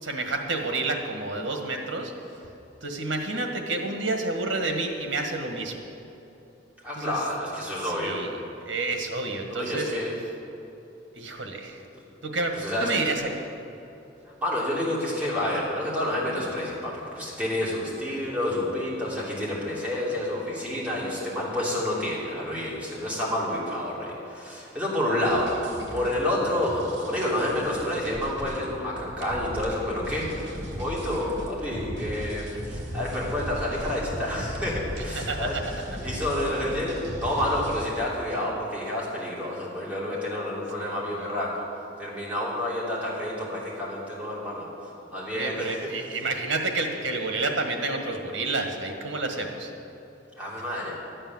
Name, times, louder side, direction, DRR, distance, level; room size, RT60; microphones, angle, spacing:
voice 1, 0.0-2.1 2.8-5.8 6.9-7.2 7.8-8.3 8.6-9.9 11.1-11.8 12.2-13.3 35.1-35.6 40.8-41.5 45.3-49.7, right 3 dB, 80° right, 4 dB, 1.6 m, -29 dB
voice 2, 6.8-8.2 9.5-10.1 12.5-13.1 14.4-30.3 30.7-35.6 36.0-41.7 42.0-44.7 45.1-45.7 50.4-51.0, left 1 dB, 10° right, -7 dB, 3.1 m, -29 dB
sound 1, 25.3-37.9, equal, 65° right, 2.6 m, -37 dB
13.0 x 8.8 x 7.2 m, 2.9 s
head